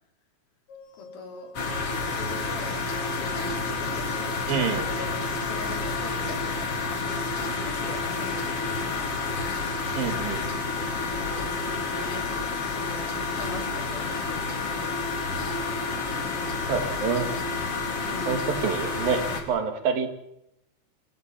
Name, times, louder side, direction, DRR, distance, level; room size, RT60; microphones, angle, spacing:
sound 1, 0.7-6.1, left 4 dB, 65° left, 4.7 m, -47 dB
voice 1, 0.9-1.6 2.0-7.4 7.6-9.2 11.2-12.3 12.8-14.9 18.0-18.5, left 4 dB, 85° left, 3 dB, 6.1 m, -41 dB
sound 2, 1.6-19.4, left 3 dB, 40° left, 4.0 m, -29 dB
voice 2, 4.5-4.9 10.0-10.4 16.7-17.3 18.3-20.1, right 6 dB, 75° right, 8 dB, 4.0 m, -27 dB
28.5 x 16.5 x 7.6 m, 0.81 s
omnidirectional pair, 4.2 m